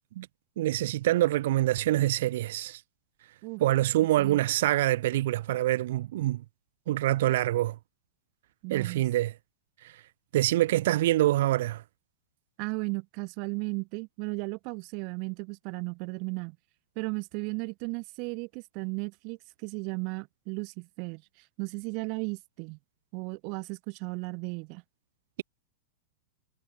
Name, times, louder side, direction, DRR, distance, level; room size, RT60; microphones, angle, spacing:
voice 1, 0.6-2.8 3.6-6.4 6.9-7.8 8.7-9.3 9.8-9.9 10.3-11.8, right 15 dB, 65° right, 3.0 m, -25 dB
voice 2, 8.6-9.0 12.6-16.6 17.0-21.2 21.6-22.8 23.1-24.8, right 34 dB, 45° right, 7.2 m, -35 dB
supercardioid pair, 145°, 0 cm